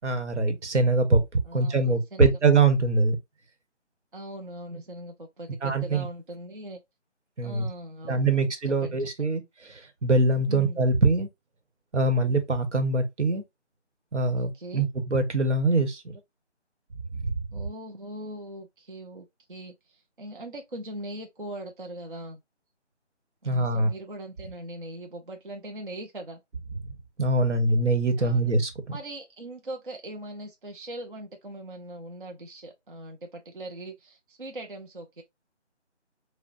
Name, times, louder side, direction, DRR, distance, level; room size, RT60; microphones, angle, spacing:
voice 1, 0.0-3.2 5.6-6.1 7.4-7.7 8.0-11.3 11.9-13.4 14.1-16.2 17.1-17.3 23.4-23.9 26.8-28.7, right 3 dB, 80° right, 1.1 m, -23 dB
voice 2, 1.5-2.3 4.1-6.8 7.4-9.4 10.4-10.8 14.4-14.9 17.5-22.4 23.4-26.4 27.5-27.8 28.2-28.5 28.9-35.2, right 1 dB, 50° right, 0.5 m, -41 dB
5.2 x 2.1 x 2.5 m
figure-of-eight pair, 175°, 35 cm